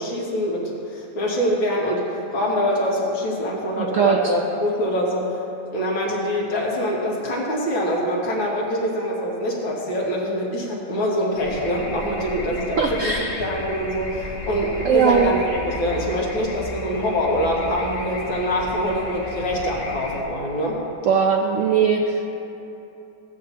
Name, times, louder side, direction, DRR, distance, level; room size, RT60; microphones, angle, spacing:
voice 1, 0.0-5.4 5.7-13.1 13.4-20.8, equal, 85° left, -3 dB, 2.4 m, -24 dB
voice 2, 3.8-4.3 12.8-13.4 14.8-15.3 21.1-22.2, right 6 dB, 75° right, 2 dB, 0.7 m, -20 dB
sound 1, 11.4-20.2, left 2 dB, 35° left, 1.0 m, -34 dB
16.0 x 8.8 x 2.8 m, 2.9 s
omnidirectional pair, 2.1 m